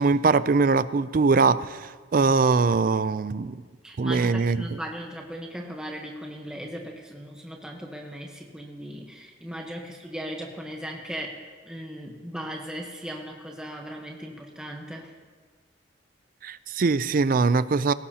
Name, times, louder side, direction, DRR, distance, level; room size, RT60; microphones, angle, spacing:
voice 1, 0.0-3.5 4.0-4.6 16.4-17.9, right 4 dB, 45° right, 16 dB, 0.4 m, -22 dB
voice 2, 3.8-15.1, equal, 5° right, 0 dB, 1.0 m, -38 dB
18.5 x 17.0 x 2.8 m, 1.5 s
head